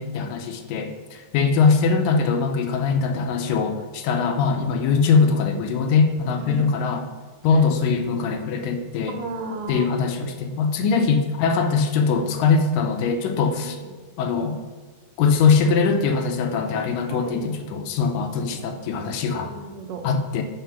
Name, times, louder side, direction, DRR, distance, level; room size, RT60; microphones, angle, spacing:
voice 1, 0.0-7.0 7.4-9.2 9.7-13.8 14.2-14.6 15.2-19.5 20.0-20.4, left 5 dB, 80° left, 6 dB, 2.2 m, -21 dB
voice 2, 6.4-6.7 9.1-10.0 13.6-13.9 17.1-17.5 18.3-18.8 19.3-20.1, right 3 dB, 80° right, 4 dB, 2.4 m, -35 dB
5.7 x 5.5 x 5.6 m, 1.4 s
omnidirectional pair, 4.0 m